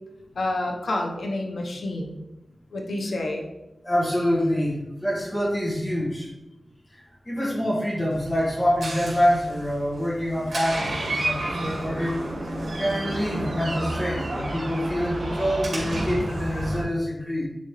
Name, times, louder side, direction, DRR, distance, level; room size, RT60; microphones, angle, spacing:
voice 1, 0.3-2.2 2.7-3.5, left 2 dB, 85° left, 1 dB, 1.1 m, -28 dB
voice 2, 3.8-6.3 6.9-12.2 12.4-17.4, equal, 25° left, -4 dB, 1.9 m, -26 dB
Door, 8.1-16.8, right 1 dB, 70° right, 2.0 m, -31 dB
9.7 x 4.2 x 3.3 m, 0.96 s
wide cardioid pair, 85°, 0 cm